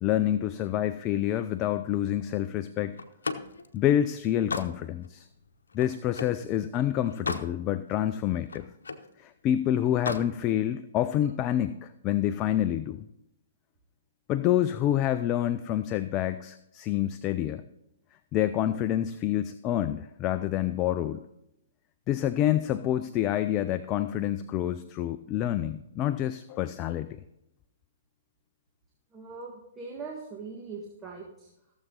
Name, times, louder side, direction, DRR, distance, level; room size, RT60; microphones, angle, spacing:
voice 1, 0.0-3.0 3.7-5.3 5.7-8.7 9.2-13.0 14.3-17.6 18.3-21.2 22.1-27.2, left 11 dB, 30° left, 11 dB, 0.4 m, -27 dB
Slam, 3.0-6.4 6.9-7.6 7.9-9.1 9.9-10.3, left 4 dB, 85° left, 0.9 m, -36 dB
voice 2, 29.1-31.5, right 4 dB, 15° right, -2 dB, 1.7 m, -41 dB
15.5 x 7.3 x 3.9 m, 0.84 s
hypercardioid pair, 130°, 0 cm